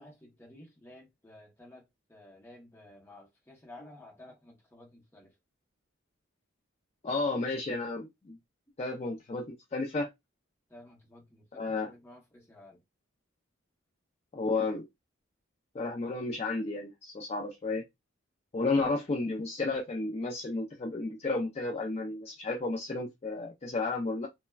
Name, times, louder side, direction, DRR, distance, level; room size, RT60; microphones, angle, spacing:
voice 1, 0.0-1.8 2.1-5.3 10.7-12.8, left 1 dB, 10° left, 0.7 m, -53 dB
voice 2, 7.0-8.4 8.8-9.4 9.7-10.1 11.5-11.9 14.3-14.9 15.7-17.8 18.5-24.3, left 3 dB, 30° left, 0.4 m, -32 dB
3.3 x 2.1 x 2.2 m
head